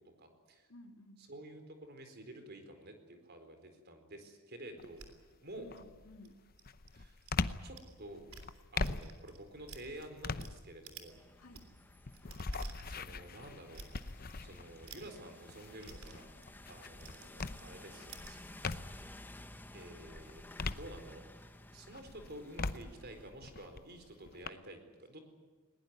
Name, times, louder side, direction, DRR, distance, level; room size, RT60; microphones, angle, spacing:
voice 1, 0.2-0.7 1.2-5.0 5.4-5.7 6.9-7.2 7.6-8.3 8.7-11.2 12.4-13.8 14.4-16.3 16.7-18.5 19.7-20.4 20.7-21.2 21.7-25.2, right 1 dB, 45° right, 7 dB, 4.3 m, -50 dB
voice 2, 0.7-1.3 5.6-6.5 11.4-11.7, left 1 dB, 75° left, 6 dB, 2.2 m, -56 dB
sound 1, 4.8-5.2 5.7-19.2 19.6-21.5 21.9-24.5, left 3 dB, 40° left, 0.8 m, -42 dB
sound 2, 5.0-7.3 7.8-7.9 8.2-10.5 10.8-11.1 11.4-18.3, right 3 dB, 75° right, 3.3 m, -52 dB
sound 3, 11.1-23.3, left 1 dB, 10° left, 1.1 m, -55 dB
20.5 x 20.0 x 9.5 m, 1.4 s
head